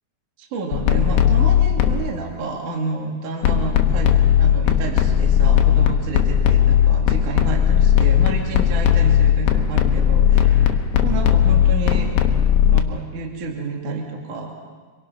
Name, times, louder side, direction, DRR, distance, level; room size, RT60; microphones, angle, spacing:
voice 1, 0.4-4.1 4.4-12.1 12.7-14.5, right 3 dB, 45° right, 0 dB, 3.3 m, -30 dB
sound 1, 0.7-2.1 3.4-12.8, left 10 dB, 70° left, 2.8 m, -17 dB
27.0 x 23.0 x 5.7 m, 1.4 s
omnidirectional pair, 5.8 m